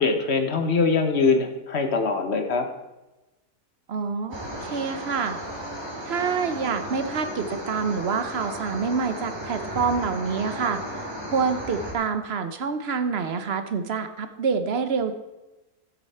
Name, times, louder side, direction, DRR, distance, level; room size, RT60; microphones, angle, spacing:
voice 1, 0.0-2.7, left 4 dB, 45° left, 6 dB, 1.3 m, -22 dB
voice 2, 3.9-5.4 6.0-11.1 11.3-15.1, right 5 dB, 50° right, 9 dB, 0.9 m, -27 dB
sound 1, 4.3-11.9, equal, 15° right, 2.4 m, -35 dB
12.5 x 8.3 x 4.3 m, 1.0 s
omnidirectional pair, 1.6 m